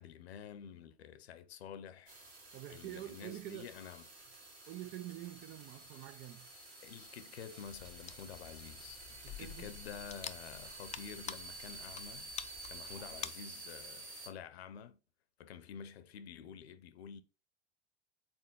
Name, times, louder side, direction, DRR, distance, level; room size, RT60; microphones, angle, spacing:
voice 1, 0.0-2.2 2.7-4.0 6.8-9.0 9.4-12.3 12.7-15.0 15.4-17.2, left 8 dB, 70° left, 0.9 m, -49 dB
sound 1, 2.1-14.3, right 2 dB, 85° right, 2.1 m, -51 dB
voice 2, 2.5-3.7 4.7-6.5 9.2-9.7 13.0-13.1, right 14 dB, 35° right, 0.5 m, -47 dB
sound 2, 7.6-13.3, left 9 dB, 20° left, 0.5 m, -48 dB
6.3 x 4.3 x 4.6 m
figure-of-eight pair, 80°, 33 cm